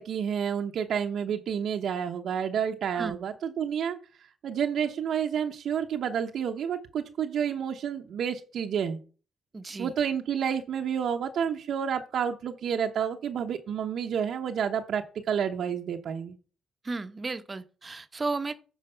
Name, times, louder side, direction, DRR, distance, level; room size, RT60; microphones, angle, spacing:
voice 1, 0.0-4.0 4.4-9.0 9.8-16.3, right 8 dB, 65° right, 0.8 m, -30 dB
voice 2, 9.5-9.9 16.8-18.5, right 3 dB, 25° right, 0.9 m, -33 dB
9.2 x 4.9 x 5.5 m
cardioid pair, 90°, 0 cm